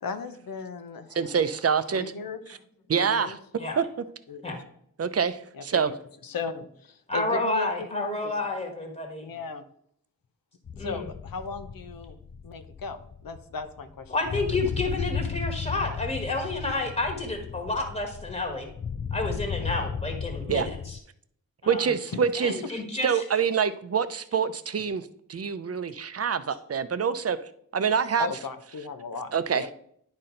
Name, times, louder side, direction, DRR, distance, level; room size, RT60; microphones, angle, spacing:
voice 1, 0.0-1.3 1.9-2.6 3.0-3.4 3.7-3.8 4.3-4.6 5.5-6.0 6.2-8.5 9.2-9.6 10.8-12.2 12.4-14.6 22.1-22.5 28.2-29.7, left 5 dB, 80° left, 9 dB, 0.8 m, -37 dB
voice 2, 1.1-2.0 2.9-3.4 3.8-3.9 5.0-5.9 20.5-20.7 21.7-22.5 23.0-27.4 27.7-28.3 29.3-29.7, right 6 dB, 45° right, 13 dB, 0.5 m, -26 dB
voice 3, 7.1-9.3 10.8-11.0 14.1-18.7 19.1-21.0 21.6-21.9 22.3-23.2, left 2 dB, 15° left, 2 dB, 1.5 m, -30 dB
sound 1, 10.7-21.0, left 6 dB, 35° left, 0.4 m, -35 dB
10.5 x 4.2 x 3.8 m, 0.67 s
wide cardioid pair, 80°, 34 cm